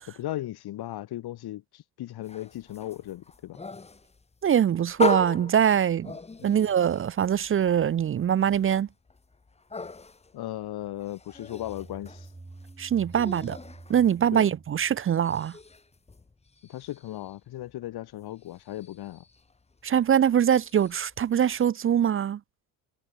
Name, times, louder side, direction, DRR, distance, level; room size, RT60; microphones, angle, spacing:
voice 1, 0.2-3.6 6.4-6.6 10.3-12.3 14.3-14.5 16.7-19.2, left 14 dB, 60° left, 5.1 m, -37 dB
sound 1, 2.2-14.7 15.0-21.7, left 3 dB, 15° left, 1.3 m, -39 dB
voice 2, 4.4-6.2 6.4-8.9 12.8-13.6 13.9-15.6 19.8-22.4, right 9 dB, 30° right, 0.6 m, -23 dB
sound 2, 11.2-15.8, right 2 dB, 15° right, 4.9 m, -48 dB
hypercardioid pair, 75°, 42 cm